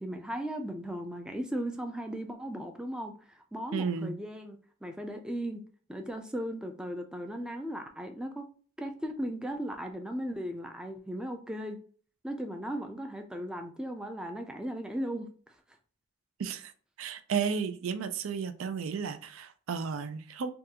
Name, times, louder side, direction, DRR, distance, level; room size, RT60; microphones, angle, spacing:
voice 1, 0.0-5.6 5.9-8.5 8.8-11.8 12.2-15.3, equal, 5° right, 4 dB, 0.3 m, -37 dB
voice 2, 3.7-4.1 16.4-16.7 17.0-20.5, right 6 dB, 90° right, 10 dB, 0.4 m, -33 dB
3.6 x 2.3 x 2.7 m, 0.43 s
head